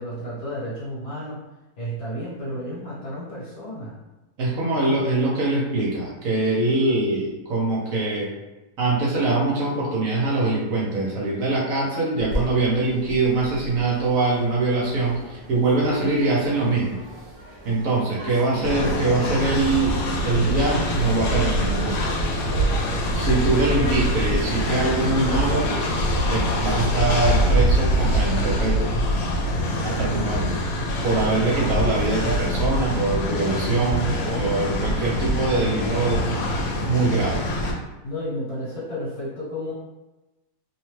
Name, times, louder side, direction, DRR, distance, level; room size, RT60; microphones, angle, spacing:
voice 1, 0.0-1.4 1.8-4.0 22.5-23.3 29.7-30.4 38.0-39.7, equal, 70° left, -8 dB, 1.3 m, -32 dB
voice 2, 4.4-8.3 8.8-17.0 17.6-20.0 20.2-22.1 23.1-25.8 26.3-28.9 29.8-30.6 31.0-36.3 36.8-37.4, right 2 dB, 65° right, -4 dB, 0.9 m, -23 dB
sound 1, 12.2-26.4, equal, 50° right, 0.4 m, -37 dB
Train, 18.6-37.7, equal, 85° left, 1.2 m, -24 dB
2.7 x 2.1 x 3.1 m, 1.1 s
omnidirectional pair, 1.7 m